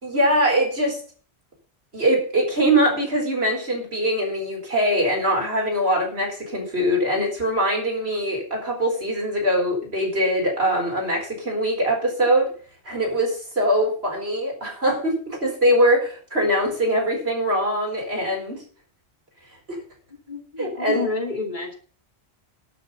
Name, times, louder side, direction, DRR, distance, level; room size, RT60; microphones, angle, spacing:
voice 1, 0.0-1.0 1.9-12.5 12.8-18.6 19.7-19.8 20.6-21.1, equal, 70° right, 1 dB, 4.8 m, -22 dB
voice 2, 20.3-21.7, left 4 dB, 45° left, 1 dB, 2.8 m, -29 dB
12.0 x 6.4 x 8.2 m, 0.42 s
omnidirectional pair, 1.1 m